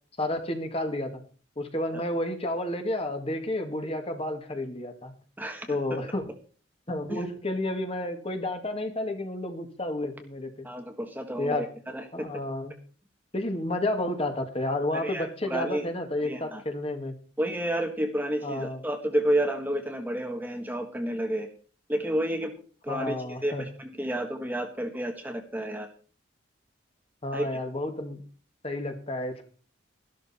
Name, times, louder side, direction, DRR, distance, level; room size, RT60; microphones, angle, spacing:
voice 1, 0.2-1.2 1.6-5.1 5.7-6.3 6.9-10.7 11.4-11.7 12.1-12.7 13.3-17.1 18.4-18.8 22.9-23.6 27.2-28.2 28.6-29.4, left 1 dB, 30° left, 6 dB, 1.9 m, -31 dB
voice 2, 5.4-5.8 7.1-7.2 10.6-11.6 11.9-12.3 14.9-15.8 16.2-16.6 17.4-21.5 21.9-22.5 22.8-23.1 23.4-25.9 27.3-27.5, right 1 dB, 10° right, 5 dB, 1.5 m, -30 dB
13.0 x 12.0 x 4.2 m, 0.40 s
head